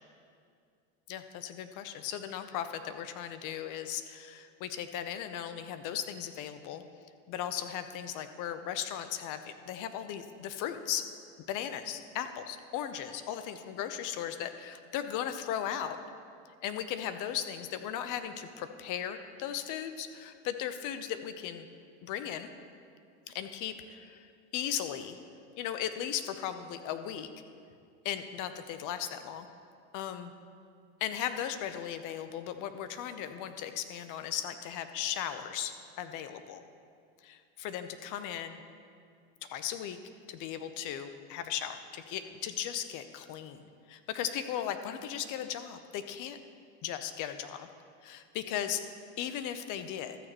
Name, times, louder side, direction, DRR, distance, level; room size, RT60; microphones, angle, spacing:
voice 1, 1.1-6.8 7.3-11.0 11.5-16.0 16.6-21.7 22.0-22.5 23.3-24.2 24.5-25.2 25.6-27.3 28.0-29.5 29.9-30.3 31.0-36.6 37.2-38.6 39.4-40.0 40.3-43.6 43.9-46.4 46.8-47.7 48.0-48.8 49.2-50.2, left 10 dB, 60° left, 10 dB, 0.8 m, -37 dB
13.0 x 6.7 x 4.4 m, 2.3 s
supercardioid pair, 90°, 36 cm